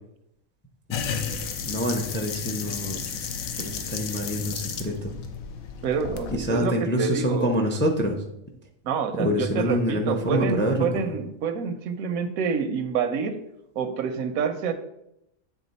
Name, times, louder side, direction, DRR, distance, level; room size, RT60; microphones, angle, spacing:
sound 1, 0.9-6.5, left 6 dB, 80° left, 1.1 m, -33 dB
voice 1, 1.6-3.0 3.5-5.1 6.3-8.2 9.2-11.1, equal, 15° left, 3 dB, 0.4 m, -26 dB
voice 2, 5.8-7.5 8.8-13.3 13.8-14.7, right 6 dB, 85° right, 9 dB, 1.1 m, -27 dB
8.2 x 3.7 x 4.1 m, 0.82 s
omnidirectional pair, 1.4 m